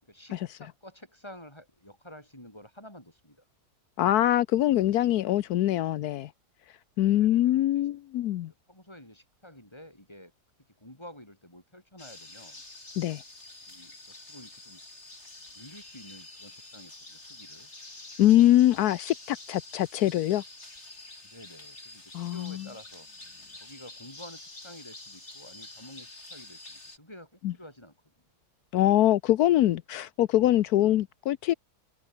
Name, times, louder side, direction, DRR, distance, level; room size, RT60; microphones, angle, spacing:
voice 1, 0.0-3.4 7.1-7.9 8.7-10.3 10.8-12.6 13.7-14.8 15.5-17.7 21.2-23.1 23.6-28.0, left 1 dB, 15° left, 6.8 m, -50 dB
voice 2, 4.0-6.3 7.0-8.5 13.0-13.2 18.2-20.4 22.1-22.6 27.4-27.5 28.7-31.5, left 13 dB, 80° left, 1.2 m, -23 dB
sound 1, 12.0-27.0, left 2 dB, 45° left, 5.2 m, -47 dB
omnidirectional pair, 1.6 m